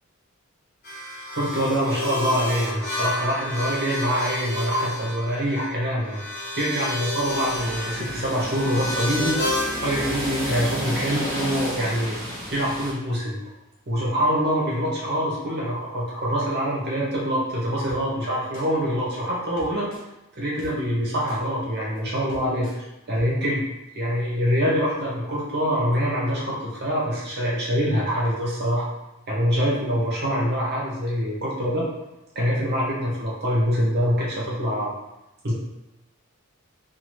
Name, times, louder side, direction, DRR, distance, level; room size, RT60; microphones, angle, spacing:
sound 1, 0.8-10.8, left 2 dB, 45° left, 1.0 m, -31 dB
voice 1, 1.4-6.2 6.6-9.4 9.8-12.2 12.5-13.4 13.9-19.9 20.4-23.6 23.9-28.9 29.3-31.9 32.3-34.9 35.4-35.5, equal, 50° right, -5 dB, 0.9 m, -25 dB
sound 2, 7.2-12.9, equal, 15° right, 1.2 m, -32 dB
sound 3, 17.9-18.0 18.5-18.7 19.6-20.0 20.6-20.7 21.3-21.4 22.0-22.1 22.3-22.8 23.1-23.2, left 1 dB, 60° left, 0.8 m, -42 dB
2.6 x 2.6 x 3.0 m, 0.94 s
head